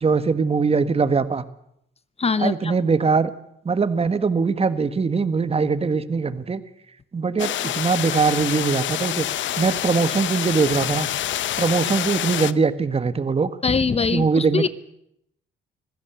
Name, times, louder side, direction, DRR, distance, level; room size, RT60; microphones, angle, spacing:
voice 1, 0.0-1.4 2.4-3.3 3.6-6.6 7.1-11.1 11.6-13.5 14.1-14.7, right 4 dB, 30° right, 13 dB, 1.6 m, -21 dB
voice 2, 2.2-2.7 13.6-14.7, left 5 dB, 30° left, 15 dB, 1.1 m, -22 dB
sound 1, 7.4-12.5, left 12 dB, 70° left, 0.9 m, -27 dB
25.5 x 15.5 x 8.1 m, 0.78 s
cardioid pair, 90°, 20 cm